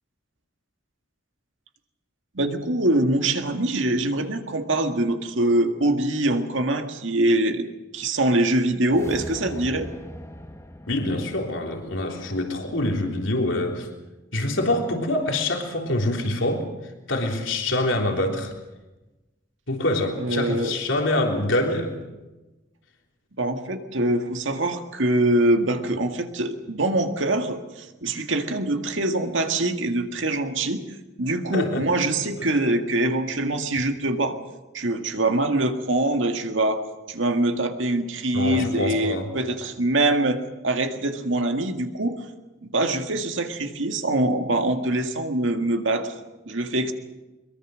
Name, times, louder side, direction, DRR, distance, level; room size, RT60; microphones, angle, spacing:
voice 1, 2.3-7.7 7.9-9.9 20.2-20.7 23.4-30.8 31.2-34.4 34.7-36.8 37.1-40.4 40.6-42.2 42.6-46.1 46.5-46.9, right 1 dB, 75° right, 5 dB, 1.9 m, -24 dB
sound 1, 8.8-13.2, left 1 dB, 15° left, 1.5 m, -41 dB
voice 2, 10.9-13.9 14.3-18.5 19.7-22.0 31.5-31.9 32.4-32.5 38.3-39.3, left 1 dB, 80° left, 2 dB, 3.5 m, -25 dB
22.5 x 22.5 x 6.4 m, 1.1 s
head